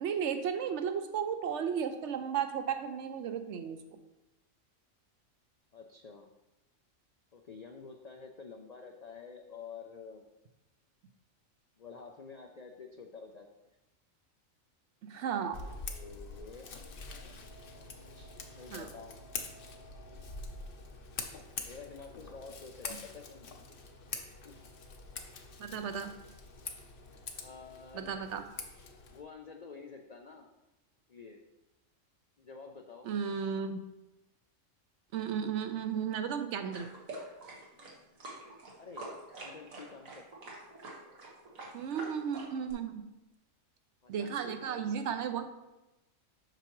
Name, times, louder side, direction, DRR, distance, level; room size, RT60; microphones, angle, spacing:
voice 1, 0.0-3.8 15.0-15.6 18.7-18.9 25.6-26.1 27.9-28.4 33.0-33.8 35.1-36.9 41.7-43.0 44.1-45.5, right 7 dB, 70° right, 8 dB, 0.8 m, -34 dB
voice 2, 5.7-6.3 7.3-10.2 11.8-13.5 15.6-16.7 18.0-19.2 21.6-23.5 24.4-24.6 27.4-28.6 29.1-30.5 31.1-31.4 32.4-33.1 38.8-40.2 41.5-41.8 44.0-45.0, left 5 dB, 70° left, 3 dB, 0.4 m, -49 dB
Scissors, 15.5-29.2, left 4 dB, 50° left, 0.8 m, -45 dB
sound 1, 36.7-42.7, right 2 dB, 85° right, 1.8 m, -46 dB
7.8 x 5.7 x 3.0 m, 0.98 s
omnidirectional pair, 1.4 m